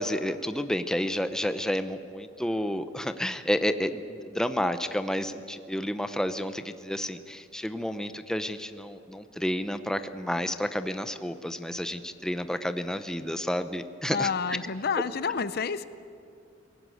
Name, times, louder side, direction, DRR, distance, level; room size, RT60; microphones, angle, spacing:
voice 1, 0.0-14.6, equal, 5° left, 9 dB, 0.8 m, -30 dB
voice 2, 14.1-15.9, left 5 dB, 55° left, 14 dB, 0.7 m, -29 dB
21.5 x 18.0 x 9.3 m, 2.4 s
head